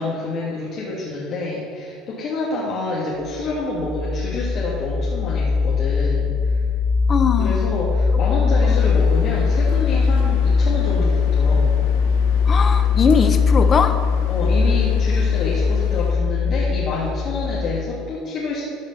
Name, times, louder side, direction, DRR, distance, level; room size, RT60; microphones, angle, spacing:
voice 1, 0.0-6.6 7.4-11.7 14.3-18.6, left 2 dB, 50° left, -5 dB, 2.1 m, -27 dB
sound 1, 3.3-17.8, left 5 dB, 10° right, 0.5 m, -20 dB
voice 2, 7.1-7.7 8.4-8.9 12.5-14.0, left 5 dB, 35° left, 9 dB, 0.9 m, -21 dB
sound 2, 8.7-16.1, left 6 dB, 85° left, 1.1 m, -39 dB
13.5 x 4.9 x 5.6 m, 2.3 s
supercardioid pair, 110°, 0 cm